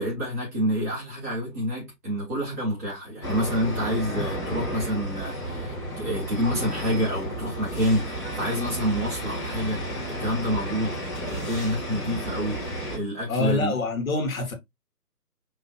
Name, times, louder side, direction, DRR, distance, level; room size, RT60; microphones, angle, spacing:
voice 1, 0.0-13.7, equal, 10° right, 1.0 m, -28 dB
sound 1, 3.2-13.0, right 1 dB, 20° left, 1.3 m, -32 dB
voice 2, 13.3-14.5, left 3 dB, 55° left, 1.5 m, -26 dB
5.6 x 3.1 x 2.4 m
figure-of-eight pair, 150°, 48 cm